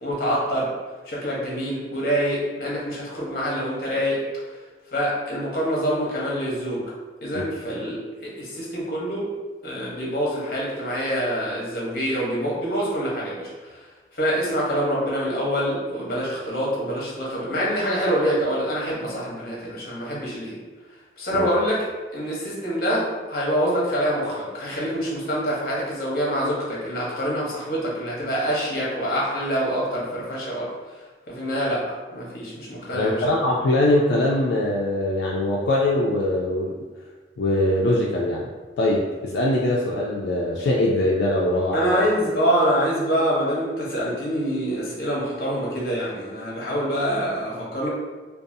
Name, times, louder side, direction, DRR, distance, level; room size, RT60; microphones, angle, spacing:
voice 1, 0.0-0.7 1.1-4.2 4.9-6.8 7.2-8.0 8.2-9.3 9.6-13.5 14.1-20.6 21.2-21.8 22.1-30.7 31.3-31.9 32.1-33.2 41.7-47.9, equal, 55° left, -5 dB, 0.8 m, -25 dB
voice 2, 32.9-36.7 37.4-38.4 38.8-41.9, left 1 dB, 80° left, -3 dB, 0.3 m, -22 dB
2.6 x 2.3 x 2.6 m, 1.3 s
head